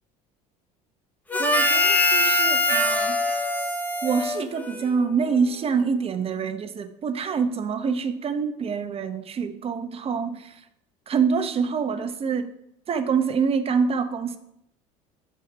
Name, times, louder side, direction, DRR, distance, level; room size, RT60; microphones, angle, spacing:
Harmonica, 1.3-5.1, left 1 dB, 10° left, 0.8 m, -23 dB
voice 1, 1.4-3.2 4.0-10.6 11.1-12.5 12.9-14.4, right 5 dB, 35° right, 8 dB, 0.9 m, -26 dB
7.3 x 4.3 x 6.8 m, 0.78 s
supercardioid pair, 95°, 17 cm